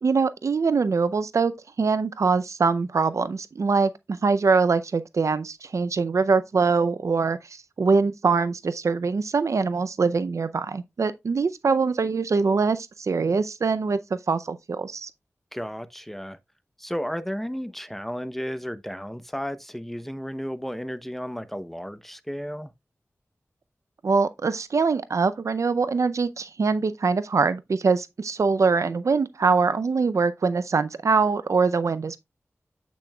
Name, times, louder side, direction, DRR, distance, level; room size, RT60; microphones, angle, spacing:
voice 1, 0.0-15.1 24.0-32.2, right 4 dB, 75° right, 0.5 m, -23 dB
voice 2, 15.5-16.4 16.8-22.7, equal, 5° left, 0.7 m, -33 dB
8.4 x 6.1 x 2.3 m
cardioid pair, 45°, 5 cm